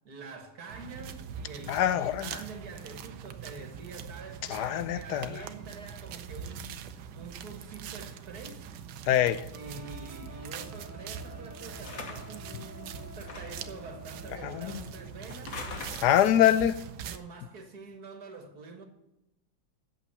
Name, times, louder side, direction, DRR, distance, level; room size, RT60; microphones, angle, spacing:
voice 1, 0.0-8.7 9.5-15.6 17.0-18.8, right 4 dB, 60° right, 2.0 m, -46 dB
sound 1, 0.7-17.2, right 7 dB, 85° right, 1.4 m, -43 dB
voice 2, 1.7-2.3 4.5-5.4 9.1-9.4 14.4-14.8 16.0-16.8, left 11 dB, 75° left, 1.1 m, -24 dB
sound 2, 9.5-15.3, left 1 dB, 15° right, 0.6 m, -50 dB
sound 3, 11.8-12.4 13.2-13.7 15.3-16.4, left 4 dB, 55° left, 1.6 m, -42 dB
8.5 x 7.1 x 6.8 m
omnidirectional pair, 1.9 m